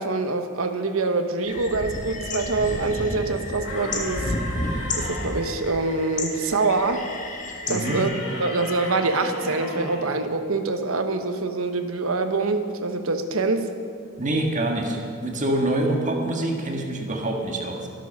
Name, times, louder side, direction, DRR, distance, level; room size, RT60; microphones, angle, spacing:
voice 1, 0.0-4.4 5.0-7.1 7.7-8.1 8.4-13.7, right 3 dB, 70° right, 7 dB, 1.1 m, -25 dB
sound 1, 1.5-8.0, left 2 dB, 35° left, 1.7 m, -31 dB
sound 2, 3.6-5.5 7.6-10.1, left 1 dB, 65° left, 4.4 m, -35 dB
voice 2, 7.7-8.0 14.2-17.9, right 1 dB, 35° right, 1 dB, 1.7 m, -25 dB
13.0 x 12.5 x 6.6 m, 2.3 s
head